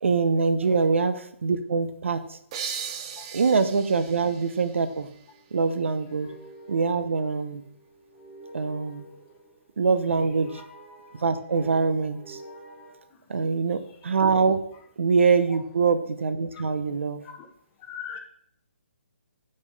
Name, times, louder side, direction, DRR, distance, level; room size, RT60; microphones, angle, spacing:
voice 1, 0.0-2.4 3.3-5.1 5.5-6.3 6.7-7.6 8.5-9.1 9.8-10.6 11.2-12.4 13.3-14.6 15.0-17.2, right 5 dB, 70° right, 0.8 m, -24 dB
sound 1, 2.5-5.9, right 7 dB, 25° right, 0.6 m, -38 dB
sound 2, 5.0-12.9, right 2 dB, 5° right, 1.5 m, -48 dB
voice 2, 17.9-18.2, left 8 dB, 20° left, 0.9 m, -40 dB
7.4 x 5.3 x 4.0 m
hypercardioid pair, 160°, 7 cm